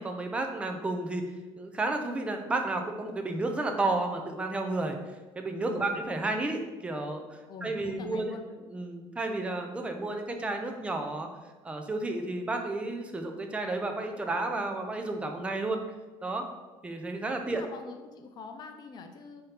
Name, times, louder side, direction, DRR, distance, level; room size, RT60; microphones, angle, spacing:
voice 1, 0.0-5.0 5.4-8.4 8.7-11.3 11.6-15.8 16.2-16.5 16.8-17.6, right 2 dB, 10° right, 4 dB, 0.4 m, -32 dB
voice 2, 5.7-6.0 7.5-8.4 17.4-19.4, left 5 dB, 40° left, 6 dB, 0.5 m, -44 dB
5.4 x 2.8 x 3.4 m, 1.2 s
cardioid pair, 135°, 11 cm